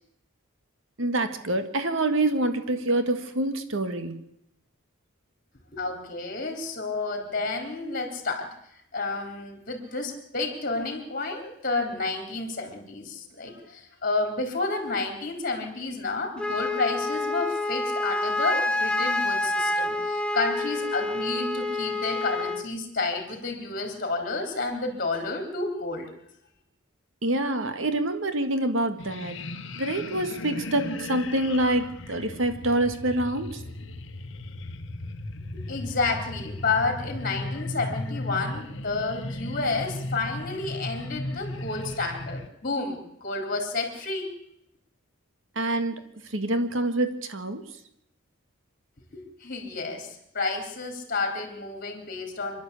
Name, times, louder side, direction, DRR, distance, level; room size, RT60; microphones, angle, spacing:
voice 1, 1.0-4.3 27.2-29.4 29.7-33.6 45.5-46.0 46.3-47.6, right 1 dB, 65° right, 9 dB, 1.8 m, -26 dB
voice 2, 5.7-8.5 8.9-26.1 35.5-44.3 49.1-52.6, left 3 dB, 40° left, 3 dB, 3.9 m, -30 dB
Wind instrument woodwind instrument, 16.4-22.7, left 2 dB, 5° left, 0.9 m, -27 dB
sound 1, 29.0-42.5, left 2 dB, 60° left, 1.3 m, -36 dB
27.0 x 11.5 x 8.4 m, 0.79 s
head